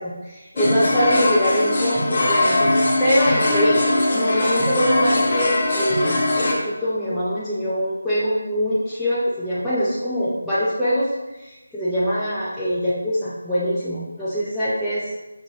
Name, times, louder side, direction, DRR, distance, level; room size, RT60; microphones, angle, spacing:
voice 1, 0.0-3.8 4.1-15.1, equal, ahead, -14 dB, 0.5 m, -23 dB
sound 1, 0.6-6.5, left 2 dB, 45° left, 1.0 m, -20 dB
5.4 x 2.5 x 3.3 m, 1.1 s
figure-of-eight pair, 160°, 0 cm